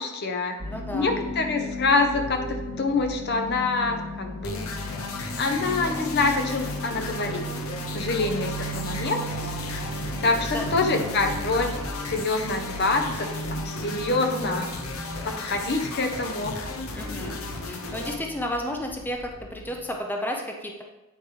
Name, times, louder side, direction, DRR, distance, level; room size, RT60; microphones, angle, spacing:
voice 1, 0.0-0.6 0.9-4.9 5.4-7.5 7.9-9.2 10.2-11.8 12.1-13.3 13.6-14.7 15.2-16.6, left 3 dB, 50° left, 4 dB, 0.8 m, -26 dB
voice 2, 0.6-1.2 8.9-9.3 10.4-10.6 17.0-17.4 17.7-20.8, left 1 dB, 10° left, 2 dB, 0.6 m, -33 dB
sound 1, 0.6-19.9, equal, 85° right, 1.5 m, -36 dB
sound 2, 4.4-18.1, left 3 dB, 75° left, 0.8 m, -35 dB
8.9 x 4.8 x 3.2 m, 1.0 s
head